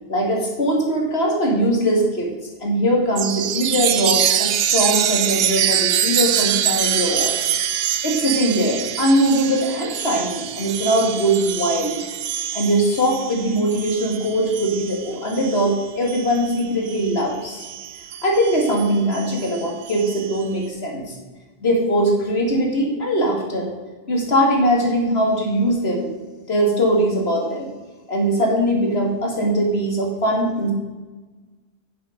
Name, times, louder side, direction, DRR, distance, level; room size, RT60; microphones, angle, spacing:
voice 1, 0.1-2.3 2.6-7.3 8.0-12.1 12.5-17.6 18.2-21.2 21.6-23.7 24.1-26.1 26.5-27.7 28.1-30.7, equal, 80° left, 0 dB, 2.6 m, -21 dB
Chime, 3.2-17.1 17.6-20.4, right 10 dB, 75° right, 0.8 m, -25 dB
9.3 x 7.7 x 5.2 m, 1.3 s
omnidirectional pair, 1.1 m